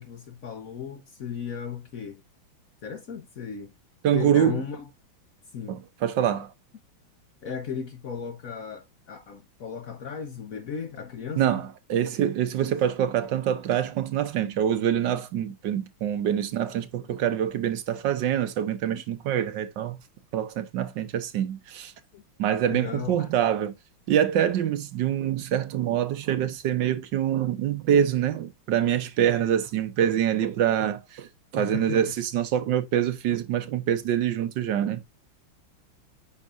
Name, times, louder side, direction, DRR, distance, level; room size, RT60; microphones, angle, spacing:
voice 1, 0.0-2.2 2.8-3.7 4.1-4.9 5.5-5.8 7.4-11.6 12.6-12.7 15.1-15.2 16.7-16.9 18.9-19.0 22.1-22.2 22.7-23.3 31.6-32.0, left 7 dB, 55° left, 1.0 m, -36 dB
voice 2, 4.0-4.6 5.7-6.5 11.4-20.0 20.3-21.9 22.4-23.7 24.1-35.0, right 10 dB, 65° right, 1.4 m, -25 dB
8.3 x 5.8 x 2.5 m
omnidirectional pair, 2.2 m